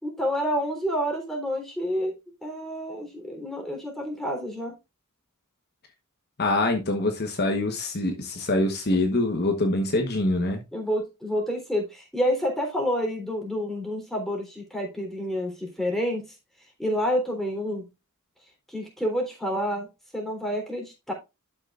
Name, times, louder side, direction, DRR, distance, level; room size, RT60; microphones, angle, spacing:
voice 1, 0.0-2.1 2.4-4.7 10.7-16.2 16.8-17.8 18.7-19.9 20.1-21.1, equal, ahead, 3.5 m, -28 dB
voice 2, 6.4-10.6, left 2 dB, 50° left, 1.2 m, -24 dB
12.0 x 6.0 x 2.5 m
head